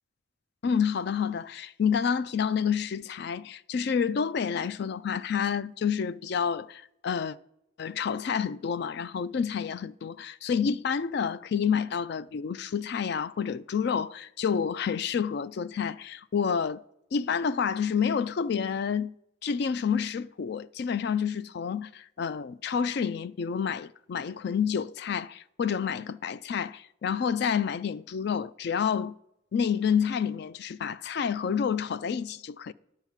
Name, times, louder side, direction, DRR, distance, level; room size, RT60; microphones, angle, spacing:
voice 1, 0.6-7.4 7.8-16.8 17.1-19.1 19.4-29.1 29.5-32.7, left 7 dB, 55° left, 0.3 m, -29 dB
10.5 x 4.5 x 7.2 m
head